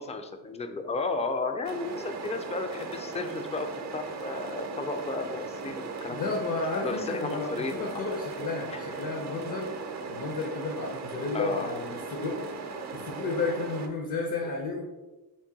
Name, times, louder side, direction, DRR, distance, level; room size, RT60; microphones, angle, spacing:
voice 1, 0.0-6.3 6.8-7.8 8.7-8.9 10.3-10.4 11.3-11.7, left 3 dB, 20° left, 7 dB, 0.3 m, -33 dB
sound 1, 1.6-13.9, right 4 dB, 45° right, 0.5 m, -38 dB
voice 2, 6.1-7.5 7.8-9.7 10.1-12.4 12.9-14.8, left 3 dB, 55° left, 1 dB, 0.7 m, -32 dB
3.6 x 2.2 x 3.9 m, 1.1 s
cardioid pair, 85°, 38 cm